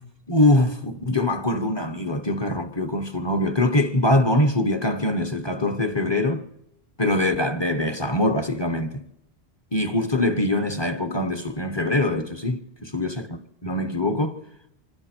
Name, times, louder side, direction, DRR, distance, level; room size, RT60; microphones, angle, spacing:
voice 1, 0.3-6.5 7.0-9.0 9.7-14.3, left 1 dB, 25° left, 1.0 m, -23 dB
25.5 x 25.0 x 4.5 m
omnidirectional pair, 1.0 m